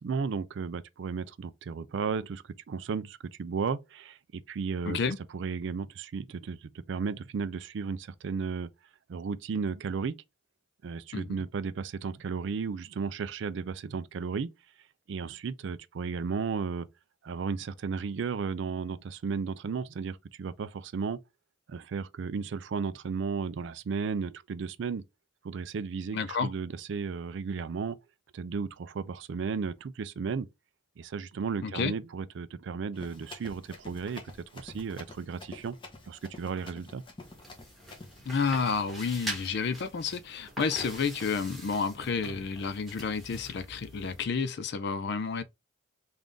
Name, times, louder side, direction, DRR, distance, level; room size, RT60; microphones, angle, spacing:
voice 1, 0.0-5.0 5.3-8.7 9.1-10.2 10.8-14.5 15.1-16.9 17.2-21.2 21.7-25.0 25.4-28.0 28.3-30.5 31.0-34.2 34.5-35.8 36.1-37.0, right 5 dB, 60° right, 0.3 m, -34 dB
voice 2, 4.9-5.2 11.1-11.3 26.1-26.5 31.6-31.9 38.3-45.4, left 5 dB, 55° left, 0.4 m, -30 dB
Run, 32.9-38.2, left 2 dB, 25° left, 0.8 m, -48 dB
sound 1, 37.2-44.3, right 1 dB, ahead, 1.1 m, -43 dB
3.7 x 2.5 x 3.4 m
head